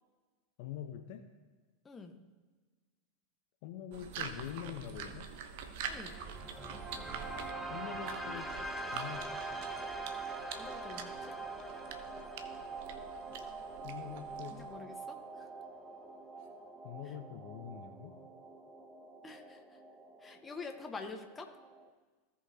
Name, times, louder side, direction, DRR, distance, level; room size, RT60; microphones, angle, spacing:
voice 1, 0.6-1.2 3.6-5.3 7.7-8.5 8.9-9.3 13.8-14.6 16.8-18.1, left 10 dB, 55° left, 5 dB, 0.9 m, -44 dB
voice 2, 1.8-2.2 5.9-6.2 10.6-11.4 14.5-15.5 19.2-19.6 20.2-21.5, left 4 dB, 20° left, 5 dB, 1.3 m, -47 dB
sound 1, 3.9-14.8, right 7 dB, 60° right, 0.9 m, -46 dB
sound 2, 5.9-21.9, right 3 dB, 5° right, 1.0 m, -44 dB
17.0 x 5.7 x 2.9 m, 1.4 s
figure-of-eight pair, 90°, 0 cm